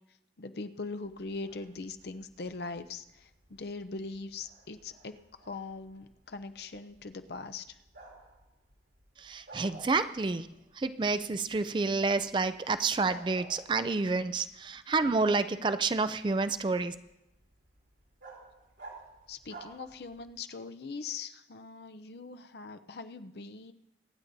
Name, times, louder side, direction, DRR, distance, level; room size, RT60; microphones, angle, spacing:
voice 1, 0.4-5.2 5.4-7.8 19.3-23.7, left 3 dB, 65° left, 9 dB, 0.6 m, -41 dB
Bark, 1.0-20.4, right 3 dB, 80° right, 3.0 m, -56 dB
voice 2, 9.2-10.5 10.7-16.9, right 3 dB, 25° right, 12 dB, 0.4 m, -29 dB
24.0 x 9.9 x 2.7 m, 0.88 s
head